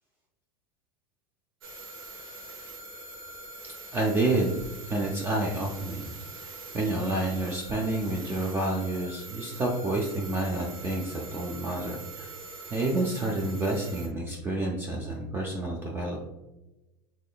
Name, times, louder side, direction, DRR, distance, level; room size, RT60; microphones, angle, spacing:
sound 1, 1.6-14.1, right 3 dB, 85° right, 0.7 m, -43 dB
voice 1, 3.9-12.3 12.7-16.3, right 2 dB, 20° right, -1 dB, 0.4 m, -29 dB
3.6 x 3.2 x 2.2 m, 1.0 s
supercardioid pair, 130°, 11 cm